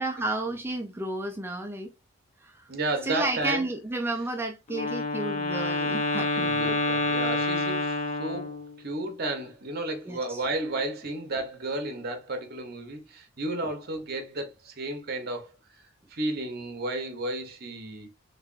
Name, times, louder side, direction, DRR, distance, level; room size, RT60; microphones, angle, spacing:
voice 1, 0.0-1.9 2.4-2.6 3.1-6.8 10.1-10.4, right 2 dB, 10° right, 0.4 m, -32 dB
voice 2, 2.7-3.7 6.1-15.8 16.1-18.1, right 2 dB, 50° right, 0.9 m, -33 dB
Wind instrument woodwind instrument, 4.7-8.8, left 2 dB, 35° left, 0.7 m, -28 dB
3.3 x 3.2 x 2.4 m
head